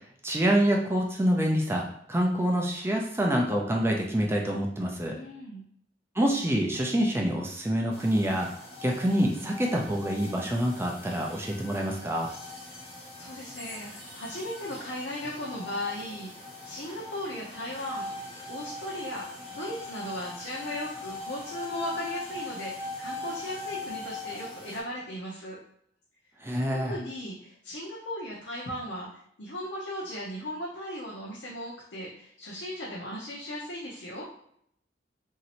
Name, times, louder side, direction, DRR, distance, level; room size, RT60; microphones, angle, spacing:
voice 1, 0.2-5.2 6.2-8.5 8.8-12.3 26.4-26.9, equal, 15° right, 0 dB, 0.4 m, -26 dB
voice 2, 5.1-5.6 12.7-12.9 13.2-18.1 18.5-19.3 19.5-25.6 26.8-29.1 29.4-34.2, left 1 dB, 70° left, -5 dB, 0.7 m, -37 dB
sound 1, 7.9-24.8, left 2 dB, 35° left, 0.8 m, -41 dB
3.0 x 2.7 x 2.9 m, 0.68 s
head